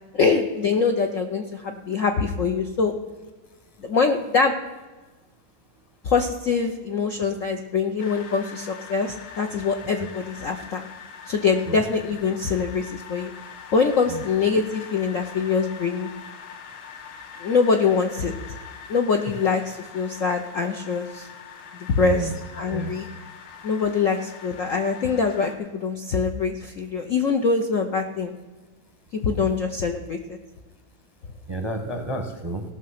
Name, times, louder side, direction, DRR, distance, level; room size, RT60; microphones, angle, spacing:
voice 1, 0.1-2.9 3.8-4.5 6.0-10.9 11.3-13.3 13.7-16.1 17.4-18.3 18.9-21.3 21.9-23.1 23.6-28.3 29.2-30.4, left 5 dB, 60° left, 4 dB, 0.8 m, -24 dB
sound 1, 8.0-25.6, left 7 dB, 85° left, 1.9 m, -43 dB
voice 2, 22.0-22.3 22.7-23.0 29.4-29.5 31.5-32.6, right 2 dB, 20° right, 5 dB, 0.7 m, -30 dB
17.0 x 6.4 x 5.8 m, 1.3 s
omnidirectional pair, 2.2 m